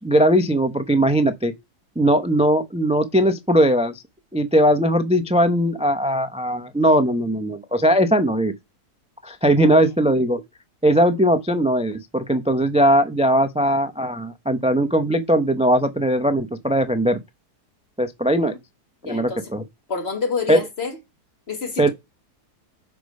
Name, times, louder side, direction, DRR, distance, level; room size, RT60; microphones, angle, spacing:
voice 1, 0.0-1.5 2.0-3.9 4.3-8.5 9.2-10.4 10.8-17.2 18.0-18.5 19.0-19.6 20.5-20.6 21.8-21.9, equal, 10° right, 0.4 m, -19 dB
voice 2, 19.0-19.5 19.9-20.9 21.5-21.9, left 5 dB, 40° left, 1.6 m, -28 dB
8.1 x 6.1 x 5.3 m
omnidirectional pair, 1.7 m